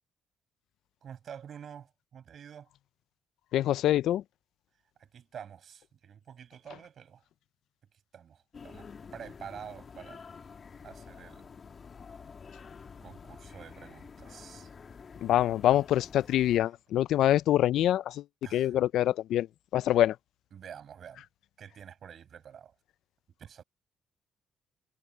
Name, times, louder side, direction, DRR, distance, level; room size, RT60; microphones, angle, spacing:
voice 1, 1.0-2.7 5.0-7.2 8.1-10.2 10.8-11.5 12.5-12.6 13.0-14.7 16.4-16.6 18.4-18.8 20.5-21.3 21.6-22.7 23.4-23.6, right 8 dB, 60° right, 5.6 m, -48 dB
voice 2, 3.5-4.2 15.2-18.2 18.5-19.5 19.7-20.2, left 12 dB, 80° left, 0.4 m, -25 dB
sound 1, 8.5-16.6, left 5 dB, 45° left, 1.9 m, -49 dB
cardioid pair, 90°, 0 cm